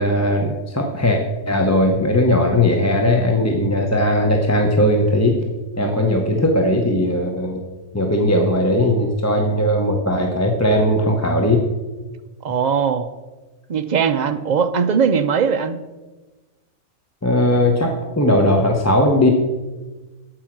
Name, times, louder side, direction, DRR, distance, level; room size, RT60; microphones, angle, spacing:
voice 1, 0.0-5.5 5.8-7.6 7.9-11.6 17.2-19.3, left 1 dB, 15° left, 2 dB, 0.7 m, -18 dB
voice 2, 12.4-13.1 13.7-15.8, right 6 dB, 55° right, 9 dB, 0.5 m, -19 dB
8.8 x 8.0 x 6.0 m, 1.2 s
omnidirectional pair, 1.4 m